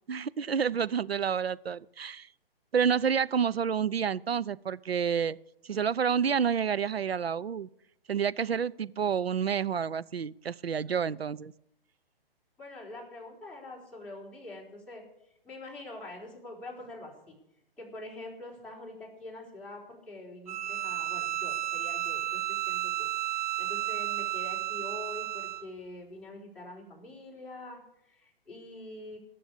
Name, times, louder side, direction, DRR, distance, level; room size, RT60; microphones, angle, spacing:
voice 1, 0.1-2.3 2.7-5.4 5.6-7.7 8.1-11.5, right 7 dB, 90° right, 16 dB, 0.6 m, -29 dB
voice 2, 12.6-15.0 15.4-17.3 17.8-19.8 20.1-29.2, left 2 dB, 5° left, -6 dB, 4.4 m, -45 dB
Bowed string instrument, 20.5-25.7, right 13 dB, 35° right, 0.9 m, -32 dB
18.0 x 7.0 x 8.5 m, 0.80 s
figure-of-eight pair, 130°, 30 cm